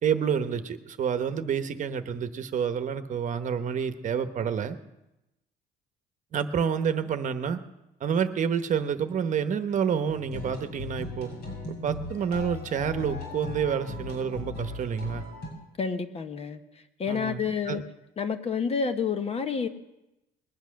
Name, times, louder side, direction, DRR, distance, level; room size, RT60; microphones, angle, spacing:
voice 1, 0.0-4.8 6.3-7.6 8.0-11.3 11.7-15.2 17.1-17.8, right 7 dB, 50° right, 10 dB, 1.0 m, -28 dB
sound 1, 10.1-15.5, left 2 dB, 75° left, 6.3 m, -38 dB
voice 2, 15.8-16.6 17.0-17.8 18.2-19.7, left 6 dB, 35° left, 9 dB, 1.0 m, -29 dB
20.5 x 8.1 x 6.4 m, 0.93 s
cardioid pair, 110°, 17 cm